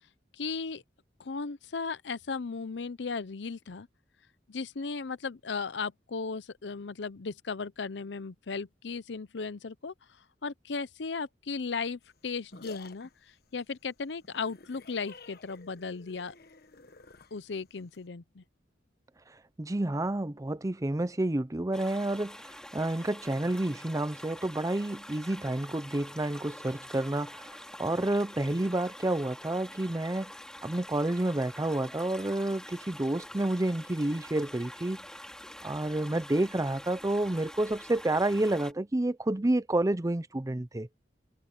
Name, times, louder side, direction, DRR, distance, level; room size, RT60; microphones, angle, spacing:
voice 1, 0.3-0.8 1.2-3.9 4.5-9.9 10.4-13.1 13.5-16.3 17.3-18.4, left 4 dB, 75° left, 0.7 m, -36 dB
sound 1, 12.0-18.1, left 4 dB, 60° left, 1.3 m, -52 dB
voice 2, 19.6-22.4 22.7-30.3 30.6-35.0 35.6-40.9, right 1 dB, 20° right, 0.6 m, -29 dB
sound 2, 21.7-38.7, left 1 dB, 5° left, 2.5 m, -46 dB
head